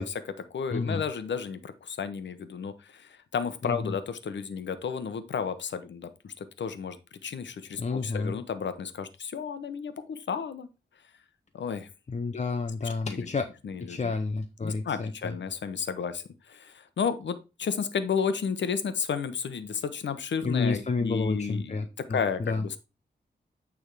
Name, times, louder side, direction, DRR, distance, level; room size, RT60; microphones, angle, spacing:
voice 1, 0.0-7.0 7.2-10.7 11.5-11.9 12.8-13.3 13.6-14.1 14.6-22.8, left 6 dB, 85° left, 11 dB, 0.9 m, -32 dB
voice 2, 0.7-1.0 3.6-3.9 7.8-8.4 12.1-13.5 13.9-15.3 20.4-22.6, left 3 dB, 40° left, 6 dB, 0.7 m, -30 dB
8.8 x 3.6 x 4.7 m, 0.29 s
cardioid pair, 70°, 18 cm